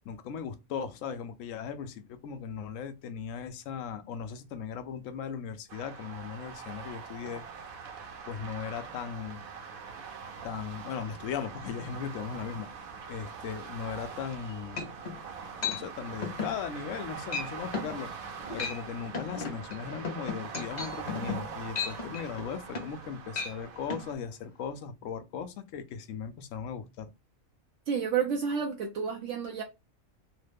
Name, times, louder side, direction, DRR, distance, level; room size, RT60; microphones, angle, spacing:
voice 1, 0.0-7.4 8.3-9.4 10.4-12.7 13.1-15.0 15.7-18.1 18.5-27.1, left 7 dB, 70° left, 0.9 m, -38 dB
sound 1, 5.7-24.1, right 5 dB, 85° right, 1.1 m, -43 dB
sound 2, 14.3-14.4 14.8-15.2 15.6-15.8 16.2-16.6 16.9-17.1 17.3-17.5 17.7-18.0 18.4-18.8 19.1-23.0 23.3-23.5 23.9-24.0, left 5 dB, 45° left, 0.6 m, -35 dB
voice 2, 27.9-29.6, right 7 dB, 70° right, 0.8 m, -30 dB
3.1 x 2.0 x 3.3 m
omnidirectional pair, 1.5 m